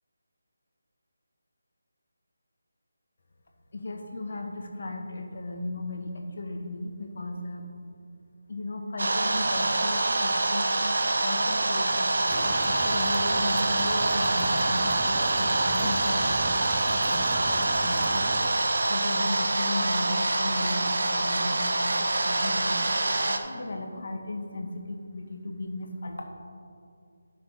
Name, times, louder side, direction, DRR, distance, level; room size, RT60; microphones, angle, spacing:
voice 1, 3.7-7.7 8.5-10.7 11.2-18.2 18.9-26.3, left 2 dB, 55° left, 3 dB, 1.3 m, -36 dB
sound 1, 9.0-23.4, right 2 dB, 70° right, 0.8 m, -25 dB
sound 2, 12.3-18.5, right 4 dB, 15° right, 0.4 m, -39 dB
12.5 x 5.9 x 3.9 m, 2.4 s
figure-of-eight pair, 165°, 0 cm